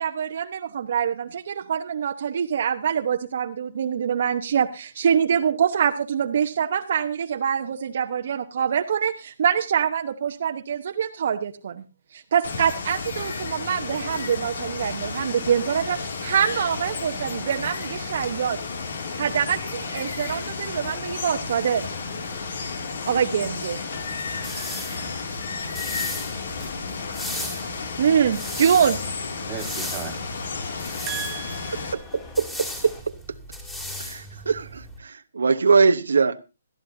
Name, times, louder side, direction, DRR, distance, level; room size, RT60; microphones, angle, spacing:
voice 1, 0.0-11.8 12.1-18.6 19.2-21.9 23.0-23.8 28.0-29.0, right 8 dB, 55° right, 0.9 m, -24 dB
Water, 12.4-31.9, left 4 dB, 65° left, 2.5 m, -32 dB
sound 1, 15.3-33.0, left 4 dB, 25° left, 3.4 m, -46 dB
sound 2, 24.0-35.0, left 1 dB, 10° left, 2.8 m, -37 dB
voice 2, 29.5-30.2 31.1-32.3, right 9 dB, 25° right, 1.8 m, -36 dB
voice 3, 31.9-32.9 34.0-36.4, right 4 dB, 85° right, 0.9 m, -22 dB
20.0 x 13.5 x 2.7 m
hypercardioid pair, 155°, 0 cm